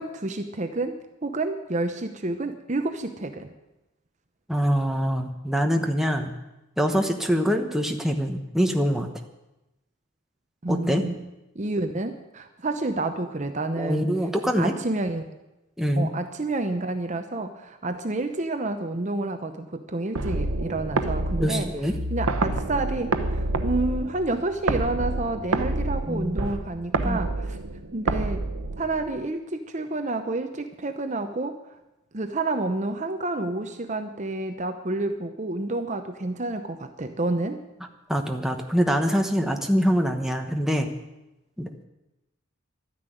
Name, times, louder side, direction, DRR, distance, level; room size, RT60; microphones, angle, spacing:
voice 1, 0.0-3.5 10.6-11.2 11.5-14.1 14.6-15.2 16.0-21.7 22.1-27.6 27.9-28.5 28.8-31.6 32.1-37.6, right 2 dB, 35° right, 7 dB, 0.8 m, -29 dB
voice 2, 4.5-6.3 6.8-9.1 10.7-11.0 13.8-14.7 15.8-16.1 21.4-21.9 26.1-26.4 27.0-27.2 38.1-40.9 41.6-41.8, equal, ahead, 3 dB, 1.0 m, -24 dB
sound 1, 20.2-29.2, right 2 dB, 75° right, 0.9 m, -28 dB
12.5 x 10.0 x 9.2 m, 0.96 s
head